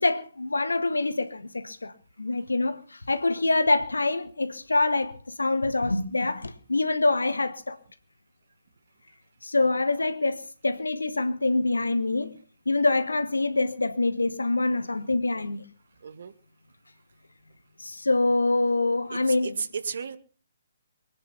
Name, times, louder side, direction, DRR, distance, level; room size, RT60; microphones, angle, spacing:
voice 1, 0.0-1.9 2.2-7.8 9.4-12.4 12.7-15.6 17.8-19.5, left 2 dB, 75° left, 1.8 m, -25 dB
voice 2, 16.0-16.3 19.1-20.2, right 6 dB, 55° right, 1.8 m, -34 dB
23.0 x 10.0 x 5.8 m
figure-of-eight pair, 135°, 0 cm